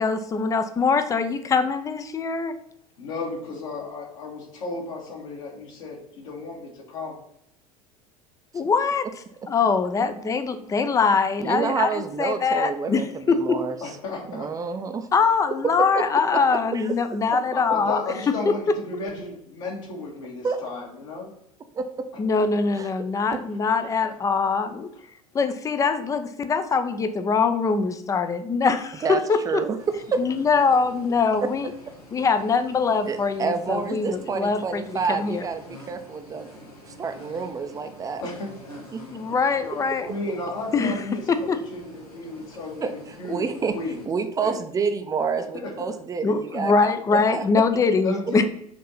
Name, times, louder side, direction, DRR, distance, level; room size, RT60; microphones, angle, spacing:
voice 1, 0.0-2.5 8.5-9.1 9.5-13.6 15.1-18.0 18.5-18.6 22.2-24.9 25.3-29.4 30.2-31.7 32.1-34.8 35.2-35.4 39.0-40.1 40.7-40.9 41.3-41.6 46.2-48.4, left 5 dB, 15° left, 10 dB, 0.6 m, -23 dB
voice 2, 3.0-7.2 13.8-14.5 17.5-21.3 38.2-38.5 40.0-44.1 44.4-44.6 45.5-45.7 48.0-48.4, left 3 dB, 60° left, -3 dB, 1.9 m, -34 dB
voice 3, 11.4-13.8 14.3-15.1 15.9-16.0 16.3-16.4 16.7-17.2 20.4-20.6 21.7-22.1 22.8-22.9 23.3-23.4 29.0-30.2 33.1-38.2 38.9-39.0 42.8-43.7 44.1-47.4, right 5 dB, 20° right, 8 dB, 0.7 m, -28 dB
sound 1, 29.8-44.1, left 1 dB, 85° left, 1.8 m, -47 dB
6.0 x 3.7 x 5.6 m, 0.75 s
figure-of-eight pair, 75°, 19 cm